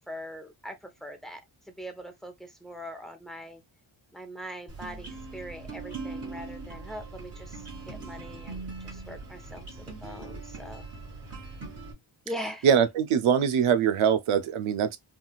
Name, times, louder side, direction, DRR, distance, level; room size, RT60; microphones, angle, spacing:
voice 1, 0.1-1.4 1.7-3.6 4.1-10.9 12.3-12.7, equal, ahead, 0.7 m, -42 dB
sound 1, 4.7-11.9, right 3 dB, 30° right, 1.5 m, -41 dB
voice 2, 12.6-15.0, right 8 dB, 90° right, 0.6 m, -23 dB
3.6 x 2.4 x 2.2 m
wide cardioid pair, 90°, 48 cm